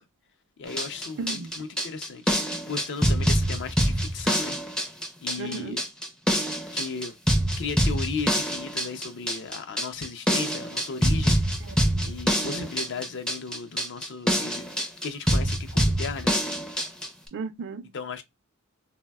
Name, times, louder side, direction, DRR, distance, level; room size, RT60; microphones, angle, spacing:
voice 1, 0.6-2.4 2.7-4.6 5.2-5.8 6.7-7.2 7.6-11.4 12.0-14.6 15.0-16.3 17.9-18.2, left 5 dB, 55° left, 0.5 m, -35 dB
sound 1, 0.7-17.1, equal, 5° left, 0.4 m, -25 dB
voice 2, 1.2-1.5 5.4-5.8 11.6-12.1 12.4-12.7 17.3-17.9, right 4 dB, 55° right, 0.4 m, -36 dB
3.3 x 2.1 x 2.2 m
head